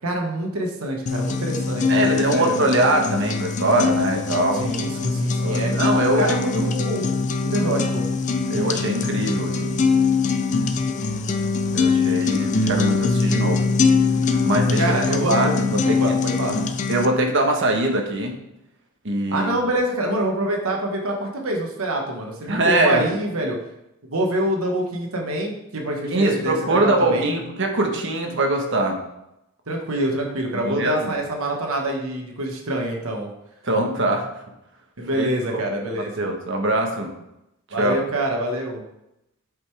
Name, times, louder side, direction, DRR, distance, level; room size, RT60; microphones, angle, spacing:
voice 1, 0.0-2.6 4.5-5.7 6.1-7.1 7.4-8.1 14.8-15.6 15.9-16.6 19.3-23.6 24.1-27.3 29.7-33.3 35.0-36.3 37.7-38.8, right 1 dB, 75° right, 1 dB, 1.4 m, -26 dB
sound 1, 1.1-17.1, left 4 dB, 35° left, 0.4 m, -22 dB
voice 2, 1.9-4.6 5.4-6.7 8.5-9.8 11.7-13.7 14.4-14.9 15.3-16.6 16.9-18.4 19.0-19.5 22.5-23.1 26.1-29.0 30.5-31.1 33.6-34.3 35.1-35.3 35.5-35.7 36.2-37.1 37.8-38.0, right 1 dB, 55° right, 3 dB, 1.2 m, -22 dB
8.0 x 5.1 x 3.4 m, 0.86 s
head